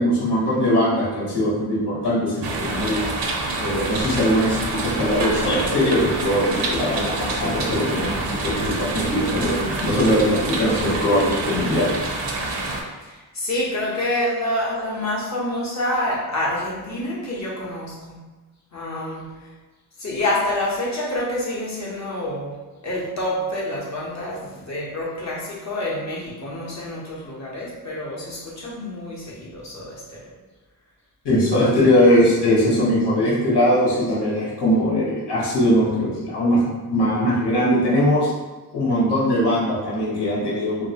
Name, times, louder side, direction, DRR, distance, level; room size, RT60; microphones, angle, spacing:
voice 1, 0.0-3.1 3.6-11.9 31.2-38.3 38.7-40.9, equal, 85° left, -6 dB, 1.2 m, -20 dB
sound 1, 2.4-12.8, right 2 dB, 80° right, 0.6 m, -27 dB
voice 2, 13.0-18.2 18.7-19.3 20.0-22.5 22.8-30.3 31.4-31.7, left 1 dB, 45° left, -5 dB, 0.8 m, -27 dB
3.1 x 2.6 x 2.8 m, 1.2 s
wide cardioid pair, 180°, 40 cm